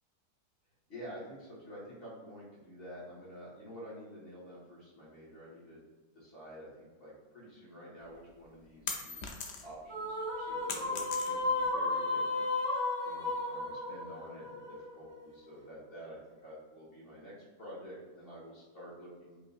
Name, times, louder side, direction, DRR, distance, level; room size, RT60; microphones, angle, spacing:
voice 1, 0.9-5.8 6.1-9.2 9.6-12.4 13.0-19.4, equal, 35° left, -7 dB, 1.5 m, -49 dB
sound 1, 8.1-9.9 10.2-11.7, left 4 dB, 85° left, 0.5 m, -40 dB
sound 2, 9.9-15.3, left 2 dB, 30° right, 0.6 m, -34 dB
5.1 x 2.7 x 2.4 m, 1.3 s
omnidirectional pair, 1.8 m